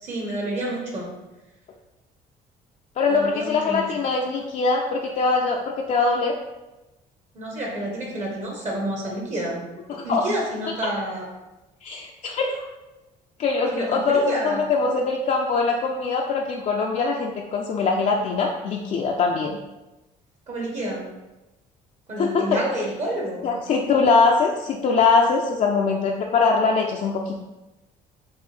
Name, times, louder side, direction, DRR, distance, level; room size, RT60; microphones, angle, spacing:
voice 1, 0.0-1.1 3.1-3.8 7.3-9.6 10.0-11.3 13.7-14.7 20.5-21.0 22.1-23.6, right 1 dB, 45° right, -2 dB, 1.2 m, -29 dB
voice 2, 3.0-6.3 9.9-10.2 11.8-12.6 13.4-19.6 22.2-22.6 23.4-27.4, left 4 dB, 45° left, -1 dB, 0.5 m, -22 dB
5.2 x 2.6 x 3.4 m, 1.0 s
cardioid pair, 110°, 17 cm